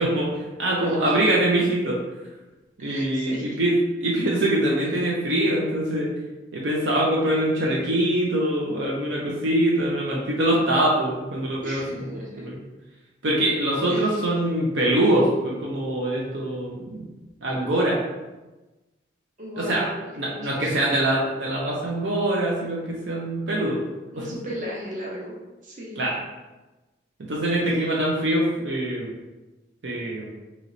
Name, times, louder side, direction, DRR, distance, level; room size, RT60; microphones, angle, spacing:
voice 1, 0.0-2.0 2.8-3.7 4.0-6.1 6.5-12.6 13.2-17.1 17.4-18.0 19.6-19.9 20.1-23.8 24.2-24.3 26.0-26.2 27.3-29.1 29.8-30.3, right 1 dB, 70° right, -4 dB, 0.6 m, -24 dB
voice 2, 0.8-1.2 2.8-3.5 11.6-12.4 13.9-14.2 19.4-20.8 24.1-25.4 25.6-26.1, equal, 40° right, -5 dB, 0.9 m, -36 dB
3.0 x 2.9 x 3.8 m, 1.1 s
head